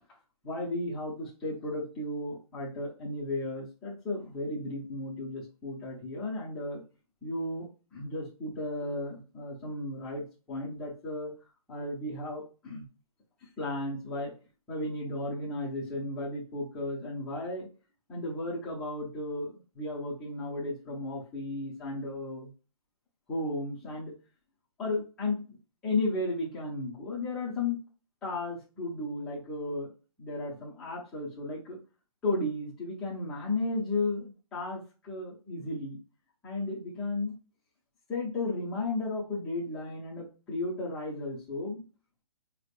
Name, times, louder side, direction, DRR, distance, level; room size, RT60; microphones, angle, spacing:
voice 1, 0.4-6.8 7.2-7.7 7.9-11.3 11.7-12.8 13.6-14.3 14.7-17.7 18.1-22.5 23.3-24.1 24.8-25.6 25.8-27.8 28.2-29.9 30.2-31.8 32.2-36.0 36.4-37.3 38.1-41.8, left 2 dB, ahead, -8 dB, 0.4 m, -34 dB
4.8 x 3.3 x 2.4 m, 0.33 s
hypercardioid pair, 175°, 19 cm